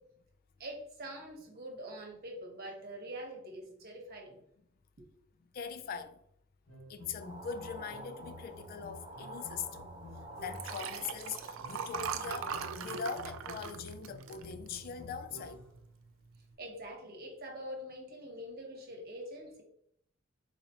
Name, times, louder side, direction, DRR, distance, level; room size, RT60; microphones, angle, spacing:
voice 1, 0.6-4.4 16.6-19.6, equal, 50° right, 1.1 m, -44 dB
voice 2, 5.5-6.2 6.9-9.9 10.4-15.6, left 6 dB, 50° left, 0.3 m, -41 dB
sound 1, 6.7-10.9 11.6-15.8, left 1 dB, 85° left, 1.3 m, -51 dB
sound 2, 7.2-13.4, right 1 dB, 25° right, 0.9 m, -49 dB
Liquid, 10.4-15.1 15.6-16.1, right 7 dB, 75° right, 0.3 m, -40 dB
4.0 x 2.8 x 2.7 m
head